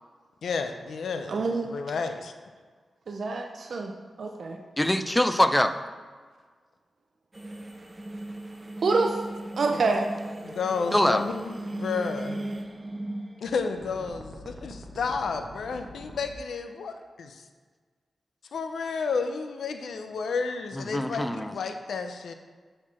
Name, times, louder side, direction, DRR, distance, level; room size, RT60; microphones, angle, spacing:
voice 1, 0.4-2.3 9.7-9.8 10.4-12.4 13.4-17.5 18.5-22.3, left 5 dB, 85° left, 7 dB, 0.5 m, -31 dB
voice 2, 1.3-1.6 3.1-3.9 4.2-4.6 8.8-9.2 9.6-10.1, right 3 dB, 70° right, 3 dB, 0.6 m, -26 dB
voice 3, 4.8-5.7 10.9-11.2 20.9-21.5, left 1 dB, 10° left, 9 dB, 0.5 m, -23 dB
sound 1, 7.3-16.3, right 1 dB, 25° right, 1.0 m, -38 dB
8.1 x 4.4 x 4.3 m, 1.5 s
cardioid pair, 65°, 0 cm